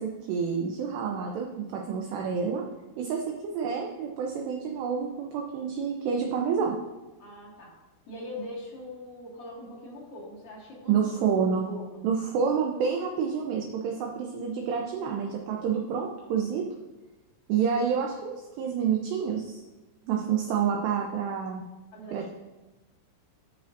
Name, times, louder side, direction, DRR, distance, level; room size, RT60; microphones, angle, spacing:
voice 1, 0.0-2.6 3.0-6.8 10.9-11.7 12.0-16.7 17.5-19.6 20.1-21.6 22.1-22.3, right 6 dB, 85° right, 0 dB, 2.4 m, -28 dB
voice 2, 7.2-7.7 8.1-12.0 21.9-22.3, left 1 dB, 50° left, -6 dB, 1.8 m, -42 dB
13.5 x 6.7 x 2.6 m, 1.1 s
omnidirectional pair, 5.8 m